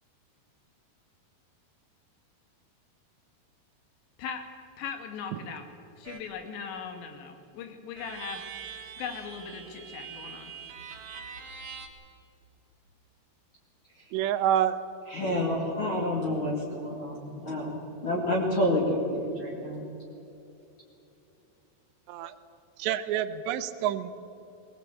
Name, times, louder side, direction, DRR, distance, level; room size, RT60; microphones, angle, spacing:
voice 1, 4.8-5.7 6.0-8.4 9.0-10.5, left 6 dB, 85° left, 6 dB, 4.2 m, -39 dB
sound 1, 6.0-6.3 8.0-11.9, right 6 dB, 50° right, 2.4 m, -43 dB
voice 2, 14.1-14.8 22.1-22.3 22.8-24.1, right 11 dB, 85° right, 12 dB, 3.1 m, -27 dB
voice 3, 15.1-19.8, left 1 dB, 35° left, -3 dB, 2.6 m, -29 dB
20.5 x 19.5 x 8.5 m, 2.8 s
omnidirectional pair, 5.0 m